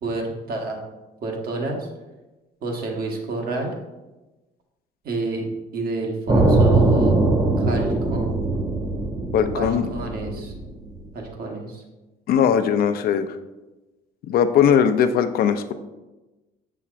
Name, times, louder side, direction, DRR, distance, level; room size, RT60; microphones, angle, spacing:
voice 1, 0.0-0.8 1.2-1.9 2.6-3.7 5.0-5.5 5.7-7.2 7.6-8.3 9.6-10.5 11.1-11.8, right 3 dB, 60° right, 1 dB, 1.3 m, -29 dB
sound 1, 6.3-11.1, right 2 dB, 20° right, 0.7 m, -21 dB
voice 2, 9.3-9.9 12.3-13.4 14.3-15.7, left 8 dB, 65° left, 9 dB, 0.5 m, -19 dB
7.1 x 5.8 x 2.5 m, 1.1 s
cardioid pair, 110°, 17 cm